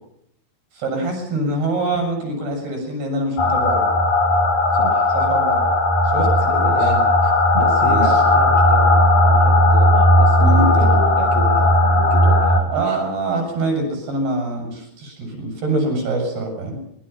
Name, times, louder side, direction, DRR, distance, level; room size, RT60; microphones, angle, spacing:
voice 1, 0.7-3.9 5.1-5.7 6.0-7.0 7.8-8.2 10.4-10.9 12.7-16.8, right 2 dB, 70° right, 4 dB, 9.6 m, -24 dB
sound 1, 3.4-12.6, left 1 dB, 55° left, 5.3 m, -16 dB
voice 2, 4.7-5.2 6.2-7.0 7.2-13.0, right 2 dB, 35° right, 1 dB, 5.9 m, -30 dB
26.0 x 22.0 x 5.8 m, 0.75 s
omnidirectional pair, 4.8 m